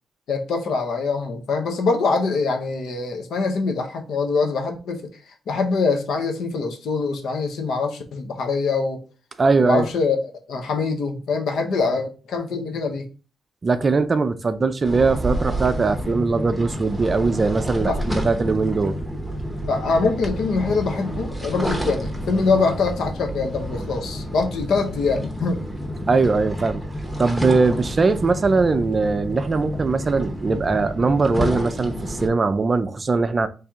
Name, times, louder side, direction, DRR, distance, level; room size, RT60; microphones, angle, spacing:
voice 1, 0.3-5.1 5.5-9.0 9.6-10.2 10.5-13.1 17.8-18.0 19.6-25.6, left 4 dB, 80° left, 0.9 m, -24 dB
voice 2, 9.4-9.9 13.6-19.0 26.1-26.8 27.2-33.5, right 4 dB, 30° right, 0.4 m, -20 dB
sound 1, 14.8-32.3, equal, ahead, 0.9 m, -29 dB
4.4 x 3.3 x 3.6 m
wide cardioid pair, 155°, 0 cm